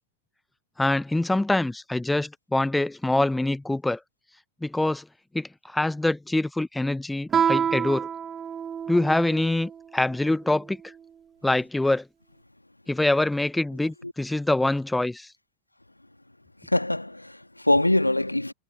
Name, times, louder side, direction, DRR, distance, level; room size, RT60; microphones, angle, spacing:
voice 1, 0.8-4.0 4.6-5.0 5.3-8.1 8.9-10.8 11.4-12.0 12.9-15.3, left 2 dB, 5° left, 0.6 m, -25 dB
Guitar, 7.3-9.8, right 7 dB, 20° right, 3.1 m, -27 dB
voice 2, 16.6-18.5, left 1 dB, 85° left, 1.6 m, -23 dB
figure-of-eight pair, 90°, 0 cm